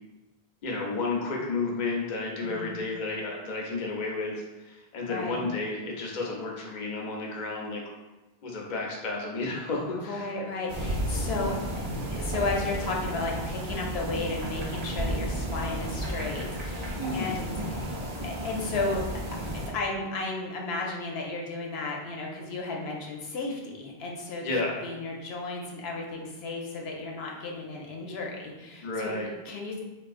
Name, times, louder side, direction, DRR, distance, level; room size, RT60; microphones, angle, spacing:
voice 1, 0.6-7.8 8.4-10.3 16.9-17.3 24.4-24.8 28.8-29.3, left 3 dB, 50° left, -1 dB, 0.6 m, -32 dB
voice 2, 2.4-2.7 5.1-5.4 9.9-11.6 12.1-17.9 18.2-19.0 19.7-24.4 24.8-29.1 29.5-29.8, left 3 dB, 85° left, -1 dB, 0.8 m, -34 dB
sound 1, 10.7-19.7, equal, 50° right, 0.6 m, -33 dB
3.5 x 2.3 x 2.4 m, 1.1 s
omnidirectional pair, 1.0 m